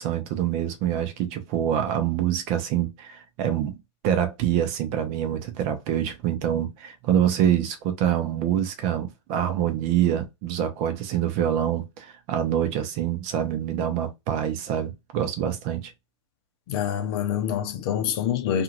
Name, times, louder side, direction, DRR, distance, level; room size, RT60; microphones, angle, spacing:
voice 1, 0.0-3.7 4.0-15.9, right 10 dB, 40° right, 0.8 m, -25 dB
voice 2, 16.7-18.6, left 9 dB, 50° left, 0.7 m, -26 dB
2.6 x 2.5 x 2.9 m
hypercardioid pair, 110°, 17 cm